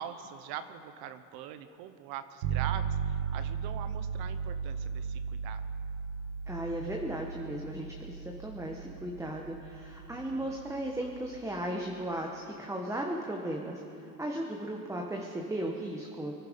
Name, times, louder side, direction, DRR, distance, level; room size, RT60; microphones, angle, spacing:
voice 1, 0.0-5.6 10.1-10.6, right 9 dB, 55° right, 11 dB, 1.0 m, -43 dB
sound 1, 2.4-11.4, right 7 dB, 75° right, 1.7 m, -36 dB
voice 2, 6.5-13.8 14.2-16.3, right 1 dB, 5° right, 0 dB, 1.2 m, -36 dB
24.0 x 10.5 x 5.2 m, 2.7 s
supercardioid pair, 100°, 44 cm